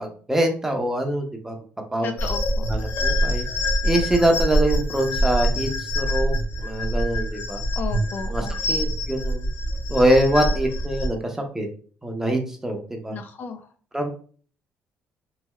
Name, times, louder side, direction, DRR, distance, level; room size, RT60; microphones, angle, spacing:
voice 1, 0.0-1.6 1.9-2.1 2.7-3.5 3.8-7.6 8.3-9.5 9.9-11.7 12.0-13.2 13.9-14.1, right 1 dB, 10° right, 2 dB, 0.7 m, -24 dB
voice 2, 2.0-2.7 7.7-8.8 13.1-13.7, left 5 dB, 50° left, 7 dB, 0.4 m, -34 dB
sound 1, 2.2-11.1, equal, 80° left, 0.9 m, -25 dB
3.1 x 2.6 x 2.3 m, 0.43 s
cardioid pair, 105°, 4 cm